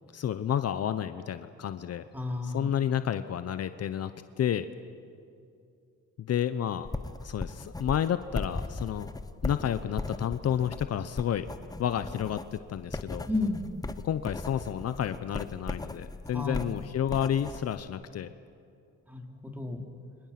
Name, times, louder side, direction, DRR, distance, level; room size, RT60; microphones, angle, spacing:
voice 1, 0.1-2.0 2.4-4.1 4.4-4.7 6.2-6.9 7.2-9.1 9.4-11.5 11.8-13.3 14.0-18.3, left 9 dB, 55° left, 11 dB, 0.8 m, -30 dB
voice 2, 2.1-2.7 13.3-13.6 16.3-16.8 19.1-19.8, left 2 dB, 5° right, 2 dB, 3.6 m, -32 dB
sound 1, 6.8-17.8, left 2 dB, 10° left, 0.9 m, -38 dB
29.5 x 25.5 x 6.0 m, 2.5 s
cardioid pair, 90°, 30 cm